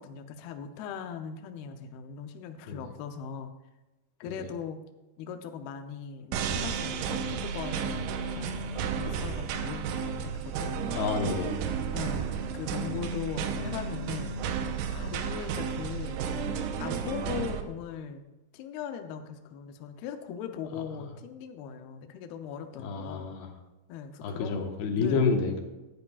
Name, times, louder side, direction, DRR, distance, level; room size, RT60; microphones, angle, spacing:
voice 1, 0.0-3.5 4.2-4.8 5.2-11.1 11.9-12.3 12.5-14.3 14.9-16.2 16.8-18.2 18.5-23.4 23.9-24.6 25.0-25.3, left 7 dB, 85° left, 6 dB, 2.2 m, -39 dB
sound 1, 6.3-17.6, right 6 dB, 80° right, 3.2 m, -32 dB
voice 2, 9.0-9.6 11.0-11.6 22.8-23.5 24.2-25.6, left 5 dB, 70° left, 3 dB, 3.0 m, -30 dB
16.0 x 12.0 x 2.4 m, 1.1 s
omnidirectional pair, 5.5 m